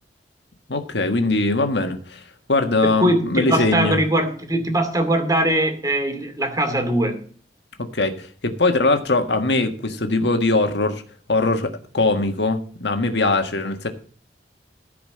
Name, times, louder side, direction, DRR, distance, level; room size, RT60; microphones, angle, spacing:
voice 1, 0.7-2.2 2.5-4.0 7.8-11.0 11.3-13.9, left 2 dB, 80° left, 1.7 m, -21 dB
voice 2, 2.8-7.2, right 1 dB, 20° right, 2.5 m, -21 dB
14.5 x 5.1 x 7.6 m
head